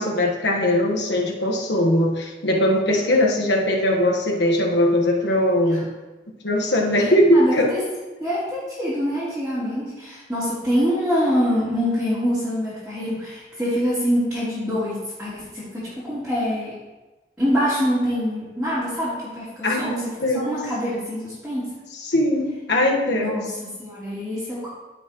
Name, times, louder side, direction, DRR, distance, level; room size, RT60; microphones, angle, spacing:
voice 1, 0.0-5.9 6.4-7.7 19.6-20.6 21.9-23.5, left 1 dB, 85° left, 0 dB, 1.4 m, -20 dB
voice 2, 7.3-7.8 8.2-16.7 17.4-20.0 20.3-21.7 23.1-24.7, equal, 5° right, -13 dB, 3.0 m, -25 dB
15.0 x 5.7 x 3.1 m, 1.2 s
head